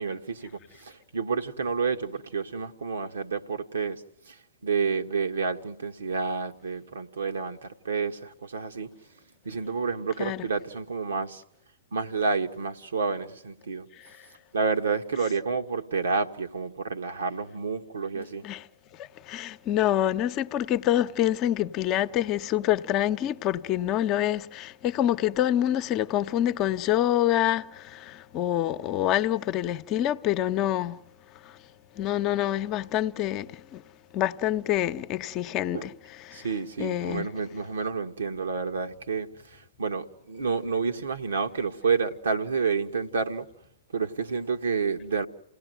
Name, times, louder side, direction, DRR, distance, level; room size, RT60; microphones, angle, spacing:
voice 1, 0.0-8.9 9.4-11.4 11.9-13.9 14.5-18.4 35.7-35.9 36.3-43.5 43.9-45.3, right 5 dB, 75° right, 1.5 m, -29 dB
voice 2, 18.2-18.6 19.3-31.0 32.0-33.8 34.1-35.9 36.3-36.5 36.8-37.3, left 12 dB, 35° left, 0.9 m, -26 dB
28.5 x 17.5 x 9.4 m
figure-of-eight pair, 110°, 0 cm